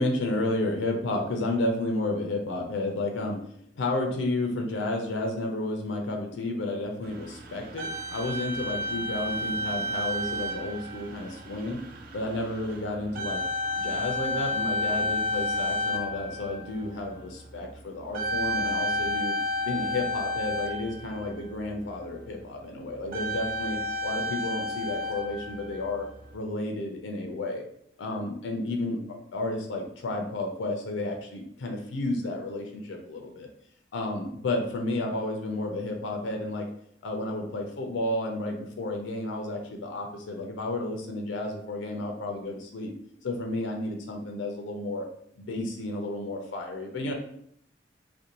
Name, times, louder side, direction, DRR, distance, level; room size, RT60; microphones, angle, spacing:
voice 1, 0.0-3.4 3.8-11.8 12.1-13.4 13.8-19.3 19.6-26.1 26.3-27.6 28.0-33.5 33.9-36.7 37.0-42.9 43.2-45.1 45.4-47.1, left 2 dB, 80° left, 2 dB, 0.4 m, -31 dB
sound 1, 7.0-21.5 23.0-26.3, left 1 dB, 50° right, 0.3 m, -31 dB
2.5 x 2.1 x 2.8 m, 0.68 s
head